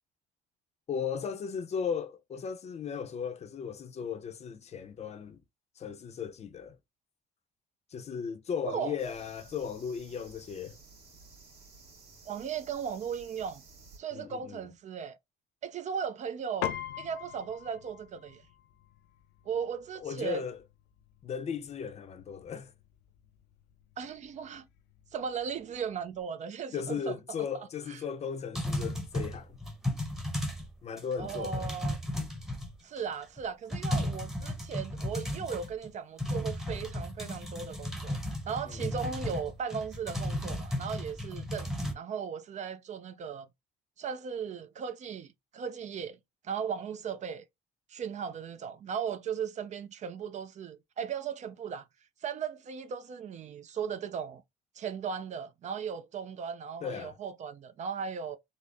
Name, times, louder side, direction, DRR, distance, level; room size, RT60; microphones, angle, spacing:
voice 1, 0.9-5.4 5.8-6.8 7.9-10.8 14.1-14.7 20.0-20.6 21.2-22.7 26.7-29.6 30.8-31.7 38.7-39.1 56.8-57.1, left 7 dB, 40° left, 0.6 m, -36 dB
voice 2, 8.6-9.0 12.3-13.6 14.0-15.2 15.6-18.4 19.4-20.4 24.0-24.7 25.1-27.2 27.9-28.0 31.2-32.0 32.8-38.2 38.5-43.5 44.0-46.2 46.4-47.4 47.9-51.8 52.2-54.4 54.8-58.4, right 7 dB, 45° right, 0.5 m, -37 dB
sound 1, 9.0-14.0, right 3 dB, 70° right, 1.9 m, -55 dB
Piano, 16.6-26.2, left 11 dB, 85° left, 0.6 m, -45 dB
sound 2, 28.5-30.7 31.0-33.0 33.4-33.5 33.7-35.9 36.2-41.9, left 1 dB, ahead, 0.9 m, -35 dB
3.8 x 2.0 x 3.4 m
cardioid pair, 110°, 17 cm